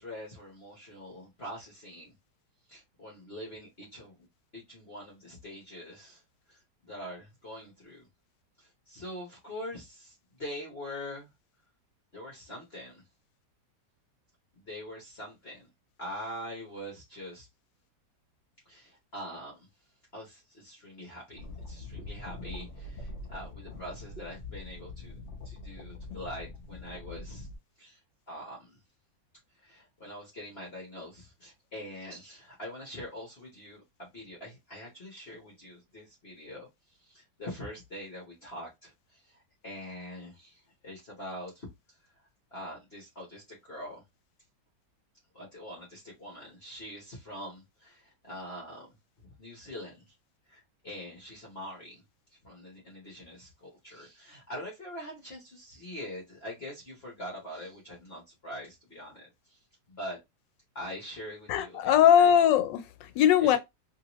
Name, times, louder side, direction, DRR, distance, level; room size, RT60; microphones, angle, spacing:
voice 1, 0.0-2.1 2.7-4.3 4.5-6.2 6.5-8.1 8.6-11.3 12.1-13.0 14.6-15.7 16.0-17.5 18.6-19.7 20.1-25.2 25.4-27.5 27.8-28.0 28.3-28.8 29.5-44.0 45.3-50.2 50.5-52.0 52.3-59.6 59.9-60.2 60.7-62.3 63.4-63.6, equal, 40° left, 1.1 m, -44 dB
sound 1, 21.4-27.6, left 2 dB, 55° left, 0.6 m, -43 dB
voice 2, 61.5-63.6, left 9 dB, 85° left, 1.3 m, -21 dB
3.0 x 2.8 x 2.9 m
omnidirectional pair, 1.9 m